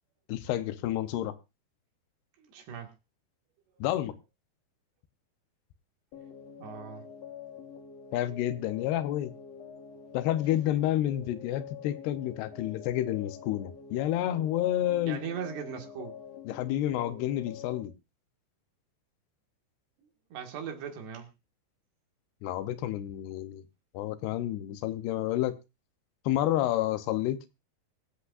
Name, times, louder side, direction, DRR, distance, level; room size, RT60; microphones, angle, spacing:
voice 1, 0.3-1.3 3.8-4.2 8.1-9.3 10.1-15.2 16.5-17.9 22.4-23.6 23.9-25.6 26.3-27.5, left 13 dB, 90° left, 11 dB, 2.9 m, -29 dB
voice 2, 2.4-2.9 6.6-7.1 15.1-16.1 20.3-21.3, right 7 dB, 90° right, 3 dB, 4.0 m, -39 dB
sound 1, 6.1-17.8, left 7 dB, 60° left, 2.0 m, -46 dB
23.5 x 8.2 x 2.5 m, 0.27 s
omnidirectional pair, 4.6 m